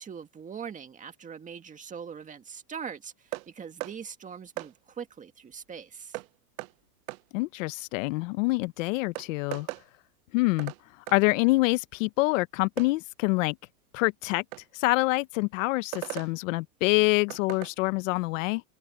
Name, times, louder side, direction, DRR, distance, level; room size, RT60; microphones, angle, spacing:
voice 1, 0.0-6.2, right 7 dB, 15° right, 1.8 m, -42 dB
sound 1, 3.3-3.5 3.8-4.0 4.6-4.7 6.1-6.3 6.6-6.7 7.1-7.2 8.6-8.7 9.2-9.8 10.6-10.8 11.1-11.2 12.8-12.9 14.5-14.6 15.9-16.3 17.3-17.7, right 21 dB, 60° right, 0.7 m, -37 dB
voice 2, 7.3-9.7 10.3-10.7 11.1-13.6 13.9-14.4 14.7-18.6, left 23 dB, 55° left, 0.9 m, -26 dB
supercardioid pair, 150°, 46 cm